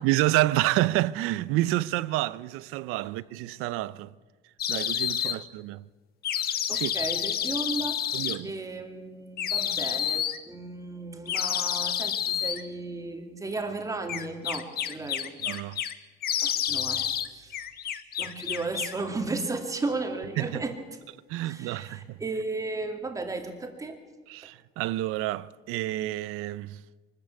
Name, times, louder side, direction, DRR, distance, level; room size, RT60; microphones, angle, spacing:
voice 1, 0.0-4.1 4.7-5.8 6.7-6.9 8.1-8.5 15.5-15.8 20.4-20.5 21.3-22.2 24.3-26.8, right 16 dB, 85° right, 0.7 m, -28 dB
sound 1, 4.6-5.4 6.2-8.4 9.4-10.4 11.3-12.6 14.1-15.9 16.2-17.3 17.5-19.0, left 9 dB, 45° left, 1.3 m, -29 dB
voice 2, 6.7-15.3 16.4-17.6 18.2-20.8 21.4-24.0, right 3 dB, 15° right, 2.5 m, -35 dB
23.5 x 13.5 x 8.4 m
cardioid pair, 150°, 21 cm